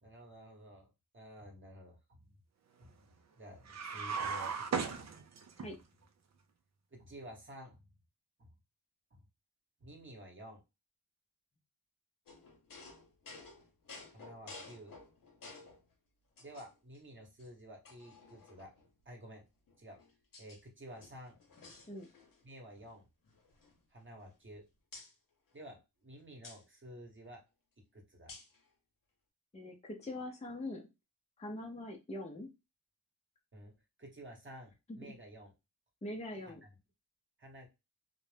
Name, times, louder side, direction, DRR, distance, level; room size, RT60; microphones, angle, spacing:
voice 1, 0.0-2.3 2.8-3.0 3.4-5.1 5.6-5.7 6.9-7.8 8.4-8.5 9.8-10.6 14.1-14.9 15.4-15.5 16.4-18.7 19.0-19.5 19.8-20.0 20.4-21.3 22.4-23.0 23.9-24.6 25.5-27.4 27.9-28.3 33.5-33.7 34.0-35.5 36.5-36.6 37.4-37.7, right 1 dB, 30° right, 2 dB, 1.0 m, -51 dB
sound 1, 3.7-5.7, right 6 dB, 45° right, 0.4 m, -36 dB
sound 2, 12.3-15.8 16.4-17.0 17.4-17.5 17.8-18.9 19.7-20.6 20.9-22.5 22.7-22.9 23.2-24.5 24.9-25.1 26.4-26.6 28.3-28.6, left 3 dB, 60° left, 0.8 m, -54 dB
voice 2, 29.5-30.8 31.4-32.5 34.9-35.0 36.0-36.6, left 1 dB, 15° left, 1 dB, 0.6 m, -42 dB
2.5 x 2.1 x 3.2 m, 0.25 s
wide cardioid pair, 85°, 39 cm